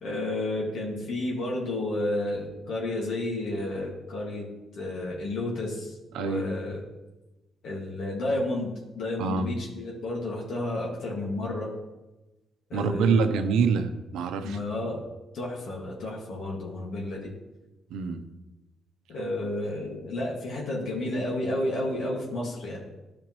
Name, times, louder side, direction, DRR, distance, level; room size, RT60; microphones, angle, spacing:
voice 1, 0.0-4.5 4.7-6.8 7.6-11.7 12.7-13.2 14.4-15.0 15.3-17.3 19.1-22.8, left 1 dB, 70° left, -3 dB, 1.9 m, -31 dB
voice 2, 6.1-6.6 9.2-9.5 12.7-14.6 17.9-18.3, right 5 dB, 85° right, 8 dB, 0.7 m, -26 dB
12.5 x 5.1 x 3.1 m, 1.1 s
cardioid pair, 90°, 0 cm